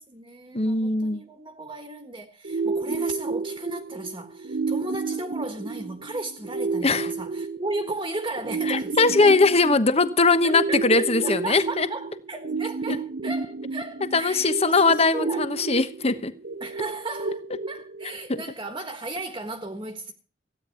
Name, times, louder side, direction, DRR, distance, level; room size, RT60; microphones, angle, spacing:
voice 1, 0.0-9.5 10.4-15.4 16.6-17.4 17.7-20.1, right 2 dB, 25° right, 1.5 m, -35 dB
voice 2, 0.5-1.2 2.9-3.0 6.8-7.1 8.7-11.9 12.9-13.0 14.1-16.3, left 3 dB, 35° left, 1.1 m, -21 dB
sound 1, 2.4-18.4, right 4 dB, 50° right, 0.7 m, -31 dB
16.0 x 9.8 x 5.7 m
head